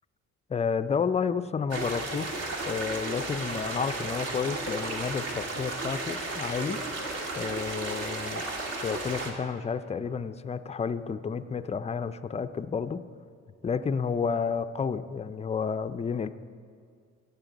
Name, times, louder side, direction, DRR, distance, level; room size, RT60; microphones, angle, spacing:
voice 1, 0.5-6.8 7.3-8.4 8.8-13.0 13.6-16.3, left 6 dB, 20° left, 12 dB, 0.4 m, -31 dB
sound 1, 1.7-9.3, right 2 dB, 55° right, 1.7 m, -34 dB
16.5 x 6.7 x 3.9 m, 2.1 s
cardioid pair, 90°, 30 cm